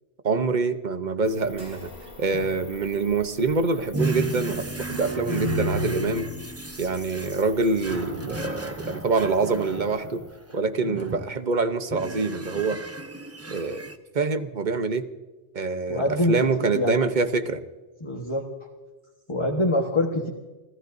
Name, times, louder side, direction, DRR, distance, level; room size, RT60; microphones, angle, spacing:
voice 1, 0.2-1.9 2.2-6.3 6.8-10.2 10.5-12.8 13.5-13.8 14.1-15.1 15.5-17.6, right 4 dB, 45° right, 9 dB, 1.0 m, -25 dB
sound 1, 1.2-10.6, left 3 dB, 70° left, 2.3 m, -50 dB
sound 2, 1.5-10.2 10.6-10.7 12.2-12.3, left 1 dB, 75° right, 4.8 m, -52 dB
sound 3, 3.9-10.3 10.8-11.5 11.9-13.9, equal, 15° right, 0.8 m, -32 dB
voice 2, 15.9-17.0 18.0-18.4 19.3-20.3, left 1 dB, 25° left, 1 dB, 1.4 m, -25 dB
30.0 x 14.5 x 2.6 m, 1.2 s
omnidirectional pair, 1.1 m